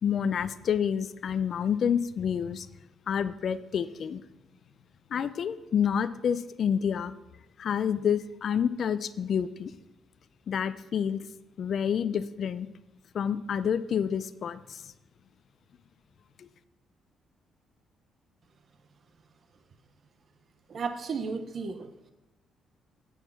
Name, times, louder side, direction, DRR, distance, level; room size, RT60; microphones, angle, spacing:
voice 1, 0.0-2.7 3.1-4.2 5.1-7.1 7.6-9.7 10.5-11.2 11.6-12.7 13.1-14.8 16.4-16.5, left 8 dB, 55° left, 14 dB, 0.5 m, -28 dB
voice 2, 20.7-21.9, right 5 dB, 50° right, 9 dB, 0.9 m, -33 dB
8.9 x 6.3 x 5.8 m, 0.96 s
cardioid pair, 90°, 0 cm